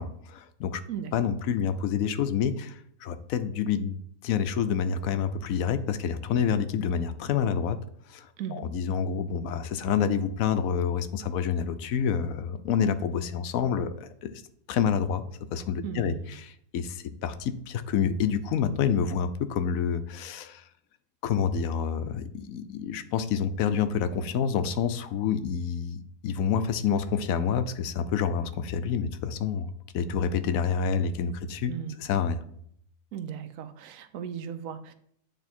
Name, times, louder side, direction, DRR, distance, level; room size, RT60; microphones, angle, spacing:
voice 1, 0.0-0.8 1.1-7.8 8.1-14.3 14.7-15.2 15.5-16.1 16.4-20.6 21.2-31.7 32.0-32.4, left 7 dB, 80° left, 11 dB, 1.0 m, -28 dB
voice 2, 15.8-16.3 31.7-32.0 33.1-34.9, right 8 dB, 75° right, 10 dB, 1.0 m, -36 dB
8.9 x 3.4 x 4.2 m, 0.67 s
omnidirectional pair, 1.4 m